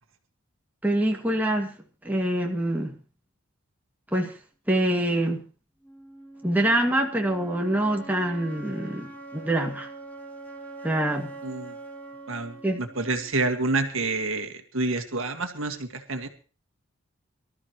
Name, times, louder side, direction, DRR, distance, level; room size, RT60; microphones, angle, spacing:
voice 1, 0.8-1.7 2.0-2.9 4.1-4.3 4.7-5.4 6.4-9.1 9.3-9.9 10.8-11.3 12.6-12.8, right 1 dB, 10° right, 1 dB, 2.2 m, -25 dB
sound 1, 5.8-13.8, right 3 dB, 10° left, 2.9 m, -43 dB
voice 2, 11.4-11.7 12.3-16.3, right 3 dB, 70° right, 6 dB, 2.1 m, -28 dB
24.0 x 13.5 x 3.1 m, 0.36 s
head